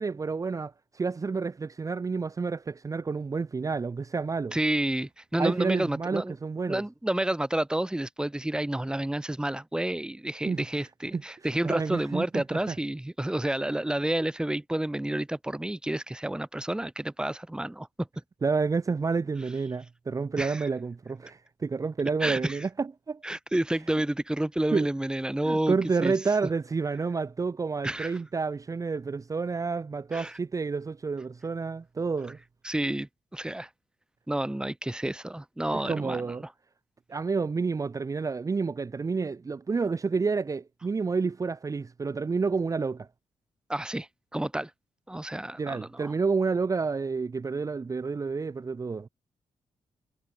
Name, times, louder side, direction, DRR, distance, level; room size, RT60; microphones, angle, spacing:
voice 1, 0.0-4.6 5.4-6.8 10.5-10.6 11.1-11.2 11.6-12.8 18.4-23.2 24.7-24.9 25.5-32.4 35.7-36.4 37.1-43.1 45.6-49.1, right 4 dB, 30° right, 1.1 m, -29 dB
voice 2, 4.5-6.3 6.7-18.1 20.4-20.7 22.2-22.6 23.2-25.8 26.0-26.1 27.8-28.2 30.1-30.4 32.6-33.7 34.3-36.2 43.7-44.7 45.1-46.1, right 1 dB, 5° right, 1.6 m, -30 dB
cardioid pair, 110°, 12 cm